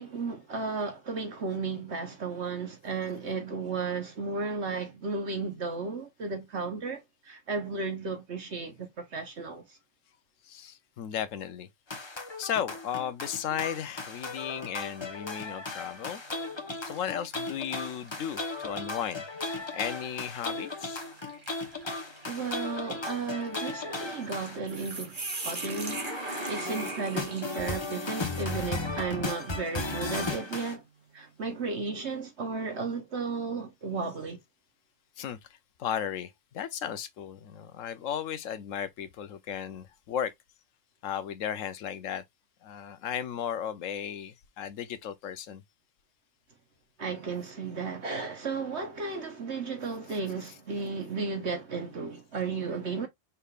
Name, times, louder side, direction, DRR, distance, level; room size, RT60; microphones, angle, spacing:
voice 1, 0.0-9.8 22.3-26.0 26.5-30.8 31.1-34.4 47.0-53.1, right 4 dB, 60° right, 1.3 m, -34 dB
voice 2, 10.4-11.7 12.4-16.2 16.9-19.3 19.5-21.0 35.2-40.3 41.0-42.2 42.6-45.6, left 9 dB, 80° left, 1.1 m, -35 dB
sound 1, 11.9-24.6 25.6-30.7, left 3 dB, 25° left, 0.9 m, -36 dB
sound 2, 13.8-14.3 14.8-14.9 15.9-16.1 16.7-28.7, right 3 dB, 40° right, 1.6 m, -42 dB
5.7 x 3.4 x 2.4 m
omnidirectional pair, 1.3 m